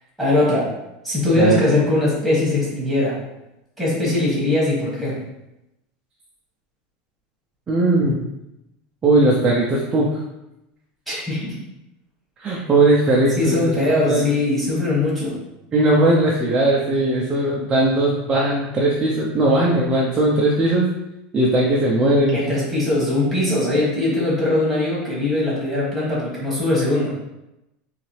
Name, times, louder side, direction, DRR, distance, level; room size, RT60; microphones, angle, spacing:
voice 1, 0.2-0.7 1.0-3.2 3.8-5.2 11.1-11.6 12.5-12.6 13.4-15.4 22.3-27.1, left 2 dB, ahead, -7 dB, 1.4 m, -21 dB
voice 2, 7.7-8.2 9.0-10.2 12.4-14.3 15.7-20.9 21.3-22.4, right 2 dB, 15° right, -4 dB, 0.5 m, -18 dB
3.8 x 3.2 x 3.2 m, 0.91 s
supercardioid pair, 165°, 5 cm